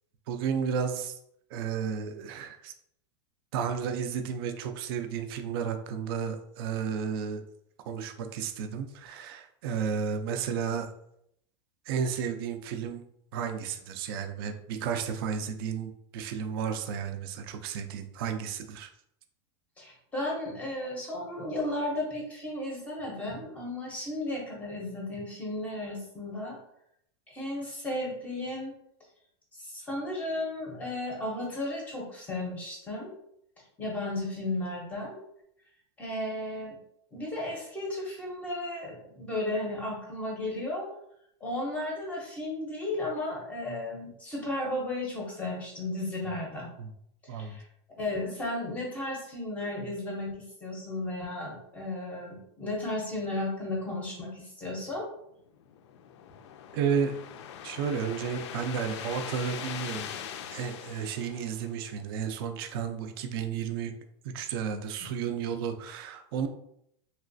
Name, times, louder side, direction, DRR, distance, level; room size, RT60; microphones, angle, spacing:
voice 1, 0.3-1.2 1.5-2.7 3.5-7.4 7.9-10.9 11.9-13.0 13.3-18.9 46.8-46.9 47.3-47.6 56.7-57.2 57.6-60.1 60.5-63.9 64.2-66.5, right 7 dB, 55° right, 6 dB, 0.4 m, -32 dB
voice 2, 19.8-26.6 27.3-28.7 29.5-33.1 33.8-35.2 36.0-36.8 37.1-40.9 41.4-46.7 47.2-47.7 47.9-55.1, left 1 dB, 10° left, -2 dB, 0.6 m, -34 dB
sound 1, 55.6-62.1, left 8 dB, 70° left, 0.4 m, -42 dB
3.1 x 2.9 x 2.5 m, 0.74 s
supercardioid pair, 170°, 15 cm